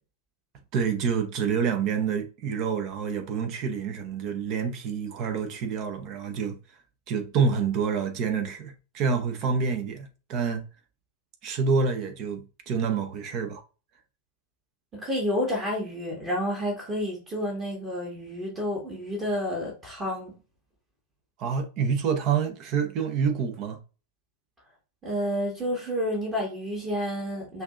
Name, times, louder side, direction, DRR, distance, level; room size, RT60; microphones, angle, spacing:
voice 1, 0.7-6.6 7.1-10.6 11.4-13.6 21.4-23.8, right 6 dB, 40° right, 1.0 m, -27 dB
voice 2, 14.9-20.3 25.0-27.6, equal, 20° right, 1.7 m, -30 dB
5.7 x 2.8 x 2.5 m
figure-of-eight pair, 90°, 0 cm